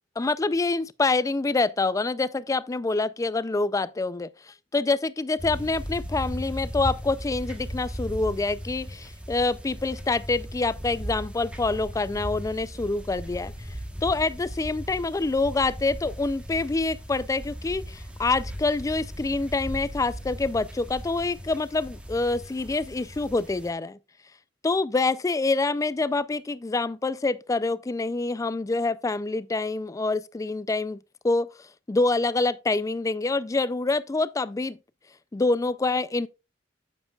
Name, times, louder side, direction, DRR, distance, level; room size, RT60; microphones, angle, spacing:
voice 1, 0.2-4.3 4.7-13.5 14.0-24.0 24.6-31.0 31.2-31.5 31.9-34.8 35.3-36.3, left 3 dB, 15° left, 0.3 m, -26 dB
sound 1, 5.4-23.7, equal, 5° right, 1.1 m, -37 dB
8.8 x 7.5 x 2.3 m
head